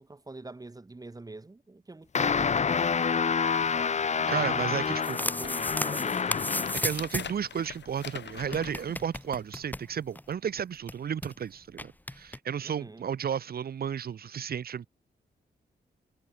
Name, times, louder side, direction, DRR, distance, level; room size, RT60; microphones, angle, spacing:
voice 1, 0.0-2.6 4.2-6.4 12.6-13.1, right 2 dB, 20° right, 1.8 m, -44 dB
sound 1, 2.1-7.0, left 6 dB, 40° left, 0.8 m, -28 dB
sound 2, 3.1-3.6 4.3-4.4 4.8-9.7 10.2-10.3, left 8 dB, 80° left, 5.4 m, -45 dB
voice 2, 4.3-5.2 6.8-14.9, right 8 dB, 60° right, 0.8 m, -33 dB
sound 3, 4.8-7.4 7.7-7.8 8.0-8.1 8.4-10.3 10.6-10.7 10.9-11.3 11.8-12.4, left 1 dB, 10° left, 2.1 m, -34 dB
wide cardioid pair, 130°, 18 cm